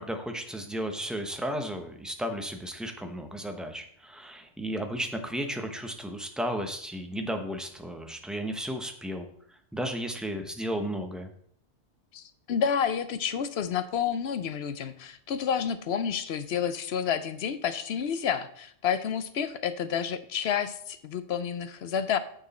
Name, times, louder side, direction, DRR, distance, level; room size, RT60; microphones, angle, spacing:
voice 1, 0.0-11.3, equal, ahead, 5 dB, 0.8 m, -34 dB
voice 2, 12.1-22.2, left 7 dB, 65° left, 13 dB, 0.9 m, -30 dB
9.0 x 6.5 x 4.2 m, 0.64 s
omnidirectional pair, 1.2 m